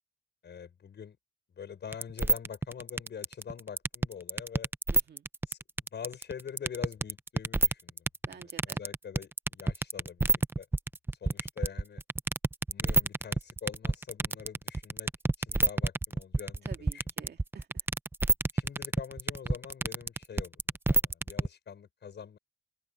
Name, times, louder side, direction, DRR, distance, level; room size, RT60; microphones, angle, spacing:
voice 1, 0.4-1.2 1.5-4.7 5.5-5.6 5.9-10.7 11.2-12.0 12.7-15.1 15.4-17.0 18.5-22.4, left 7 dB, 60° left, 6.5 m, -44 dB
sound 1, 1.9-21.5, right 3 dB, 10° right, 0.5 m, -28 dB
voice 2, 4.9-5.3 8.2-8.8 16.6-17.9, right 7 dB, 55° right, 2.4 m, -50 dB
open air
cardioid pair, 120°, 21 cm